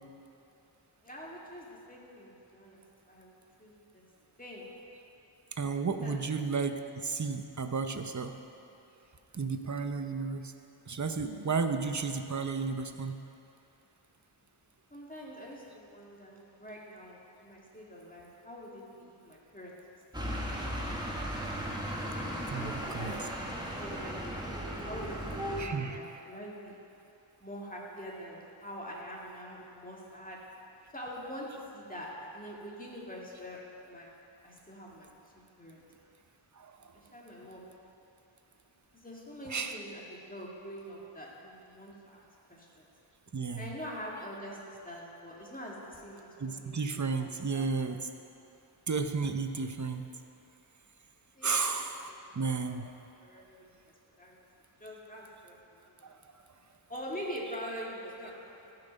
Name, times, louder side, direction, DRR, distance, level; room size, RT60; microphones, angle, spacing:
voice 1, 1.0-2.8 3.1-4.0 4.4-4.7 6.0-6.2 14.9-19.8 20.2-20.6 22.5-26.8 27.4-30.4 30.9-33.6 33.8-34.1 34.4-35.8 36.9-37.7 38.9-42.8 43.6-46.3 46.6-48.0 51.4-52.5 53.2-53.8 54.2-54.4 54.8-56.2 56.9-58.4 58.6-58.7, equal, 15° left, -4 dB, 2.1 m, -45 dB
voice 2, 5.6-8.4 9.3-10.5 10.9-13.2 22.5-23.2 25.6-26.2 36.6-36.9 39.5-39.8 43.3-43.7 46.4-48.0 48.9-50.1 51.4-52.9 56.0-56.1, right 4 dB, 35° right, 7 dB, 0.7 m, -33 dB
sound 1, 20.1-25.6, equal, 10° right, 1.5 m, -36 dB
14.5 x 5.9 x 5.2 m, 2.9 s
wide cardioid pair, 50°, 49 cm